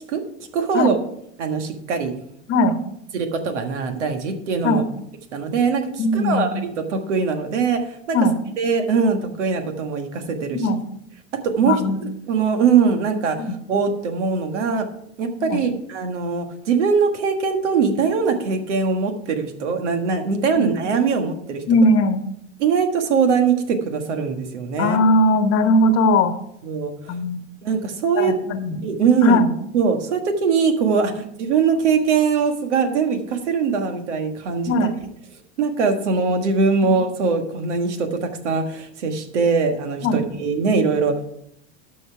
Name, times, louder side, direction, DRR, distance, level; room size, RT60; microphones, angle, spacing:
voice 1, 0.5-1.0 1.4-2.1 3.1-4.8 5.3-8.2 8.6-10.7 11.4-14.9 15.2-21.6 22.6-25.0 26.6-27.2 27.6-28.3 28.8-29.4 29.7-34.9 35.6-41.2, right 5 dB, 80° right, 6 dB, 1.6 m, -21 dB
voice 2, 6.0-6.5 8.1-8.4 10.5-10.8 11.7-12.1 13.4-13.5 15.5-15.6 20.5-20.6 21.7-22.2 24.8-26.3 27.1-27.4 28.2-28.8 29.2-29.5 34.7-34.9 40.0-40.2, left 1 dB, 40° left, 9 dB, 1.1 m, -18 dB
12.5 x 5.6 x 4.7 m, 0.75 s
hypercardioid pair, 100°, 35 cm